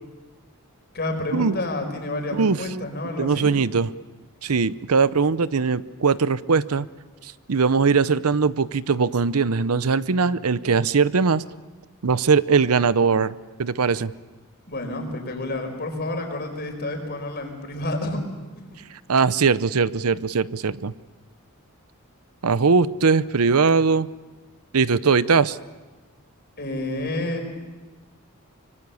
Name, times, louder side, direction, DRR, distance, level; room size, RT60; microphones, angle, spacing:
voice 1, 0.9-3.5 14.7-18.2 26.6-27.4, left 2 dB, 45° left, 4 dB, 4.9 m, -29 dB
voice 2, 3.2-3.9 4.4-6.9 7.2-11.4 12.0-13.3 13.6-14.1 19.1-20.9 22.4-24.1 24.7-25.6, right 5 dB, 85° right, 16 dB, 0.7 m, -20 dB
25.0 x 24.5 x 7.1 m, 1.3 s
head